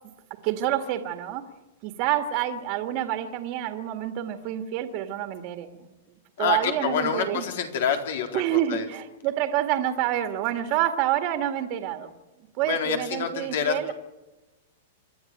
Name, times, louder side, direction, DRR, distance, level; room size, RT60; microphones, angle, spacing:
voice 1, 0.4-1.4 1.8-5.9 6.4-7.5 8.3-12.1 12.6-13.9, right 12 dB, 40° right, 6 dB, 1.9 m, -27 dB
voice 2, 6.4-8.9 12.6-13.9, left 7 dB, 70° left, 5 dB, 3.9 m, -27 dB
26.5 x 12.0 x 9.2 m, 1.0 s
supercardioid pair, 150°, 0 cm